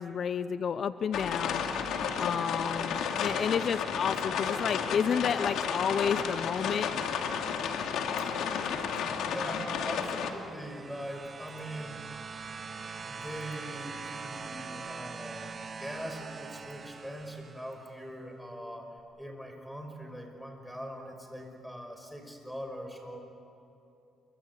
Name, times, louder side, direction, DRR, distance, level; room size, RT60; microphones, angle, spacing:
voice 1, 0.0-1.6 2.1-6.9, left 7 dB, 55° left, 13 dB, 0.6 m, -31 dB
sound 1, 1.1-10.3, left 7 dB, 85° left, 2.4 m, -32 dB
voice 2, 9.2-12.0 13.0-23.2, equal, ahead, 3 dB, 5.7 m, -42 dB
sound 2, 10.2-17.9 19.0-19.1, right 5 dB, 40° right, 1.8 m, -43 dB
28.5 x 24.0 x 8.3 m, 2.8 s
cardioid pair, 90°, 0 cm